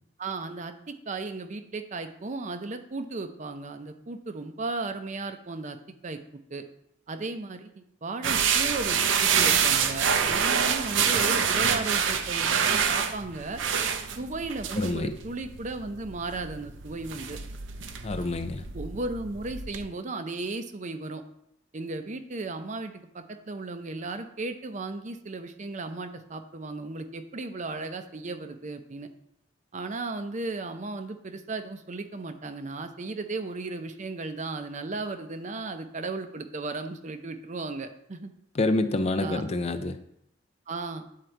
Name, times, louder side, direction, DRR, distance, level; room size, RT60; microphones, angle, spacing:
voice 1, 0.2-6.2 6.5-6.6 7.1-13.6 14.2-17.4 18.7-21.2 21.7-29.1 29.7-38.3 39.2-39.4 40.7-41.0, right 3 dB, 40° right, 8 dB, 0.6 m, -35 dB
sound 1, 8.2-19.9, right 7 dB, 80° right, 0.6 m, -27 dB
voice 2, 14.8-15.1 18.0-18.6 38.5-40.0, left 2 dB, 35° left, 9 dB, 0.4 m, -27 dB
9.3 x 3.7 x 4.5 m, 0.76 s
head